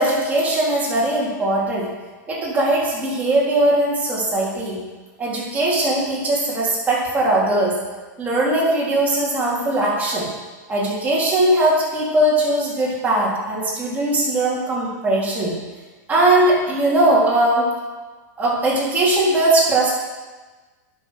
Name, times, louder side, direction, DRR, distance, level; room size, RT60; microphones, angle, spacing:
voice 1, 0.0-1.9 2.3-4.8 5.2-7.7 8.2-10.3 10.7-15.5 16.1-17.7 18.4-19.9, right 1 dB, 15° right, -6 dB, 3.7 m, -19 dB
9.6 x 6.6 x 6.5 m, 1.3 s
hypercardioid pair, 130°, 10 cm